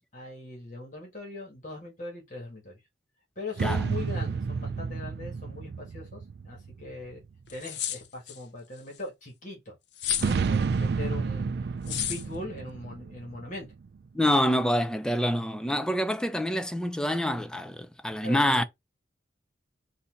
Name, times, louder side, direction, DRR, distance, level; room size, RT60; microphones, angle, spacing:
voice 1, 0.1-2.8 3.3-7.2 7.5-9.7 10.2-11.5 11.8-13.7 18.2-18.6, left 2 dB, 45° left, 1.7 m, -40 dB
sound 1, 3.6-7.3 10.2-14.0, right 5 dB, 65° right, 0.3 m, -31 dB
sound 2, 7.0-7.1 7.5-8.4 10.0-10.4 11.9-12.2, left 10 dB, 75° left, 0.6 m, -31 dB
voice 2, 14.1-18.6, equal, 5° left, 0.4 m, -26 dB
4.1 x 2.7 x 3.8 m
head